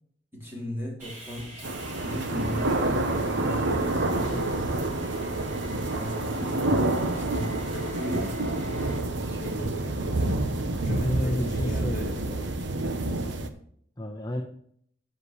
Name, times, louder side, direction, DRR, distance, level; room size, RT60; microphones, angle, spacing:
voice 1, 0.3-1.5 2.0-4.3 5.8-6.7 7.1-8.3 9.2-12.5, equal, 10° right, -4 dB, 3.7 m, -37 dB
Sawing, 1.0-9.0, right 1 dB, 40° right, 3.4 m, -46 dB
sound 1, 1.6-13.5, right 2 dB, 70° right, 1.0 m, -28 dB
voice 2, 4.3-5.1 10.8-12.0 14.0-14.4, left 1 dB, 20° left, 1 dB, 0.9 m, -32 dB
12.5 x 8.3 x 3.2 m, 0.65 s
head